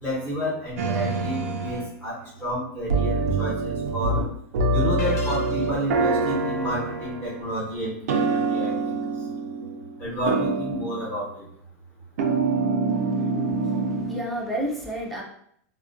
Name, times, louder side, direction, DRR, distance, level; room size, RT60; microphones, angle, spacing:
voice 1, 0.0-4.3 4.7-9.3 10.0-11.5, equal, 20° left, -8 dB, 0.9 m, -30 dB
sound 1, 0.8-1.9 2.9-4.2 4.5-7.5 8.1-10.0 10.3-11.2 12.2-14.3, right 3 dB, 85° right, 0.4 m, -25 dB
sound 2, 5.0-6.0, left 4 dB, 80° left, 0.4 m, -37 dB
voice 2, 12.9-15.2, right 1 dB, ahead, -4 dB, 0.3 m, -32 dB
2.4 x 2.1 x 2.5 m, 0.67 s
supercardioid pair, 160°, 8 cm